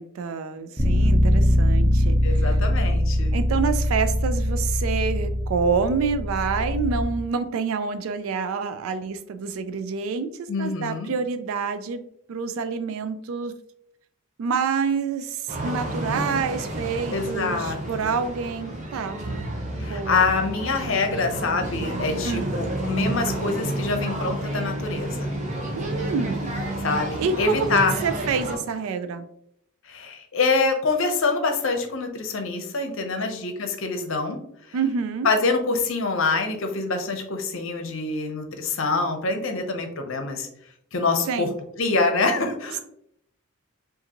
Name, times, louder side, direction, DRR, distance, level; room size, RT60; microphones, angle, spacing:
voice 1, 0.0-2.6 3.3-12.0 12.3-13.5 14.4-19.3 19.8-20.2 22.2-22.5 25.8-26.5 27.2-29.3 34.7-35.3 41.3-41.5, right 5 dB, 70° right, 10 dB, 0.3 m, -27 dB
Bass guitar, 0.8-7.0, equal, 5° right, 0.7 m, -22 dB
voice 2, 2.2-3.4 10.5-11.1 17.1-18.1 19.8-25.3 26.8-28.0 29.8-34.4 35.2-40.5 40.9-41.5 41.8-42.8, left 3 dB, 60° left, 5 dB, 0.7 m, -25 dB
sound 1, 15.5-28.5, right 1 dB, 35° right, 0.8 m, -30 dB
4.9 x 2.6 x 2.9 m, 0.71 s
head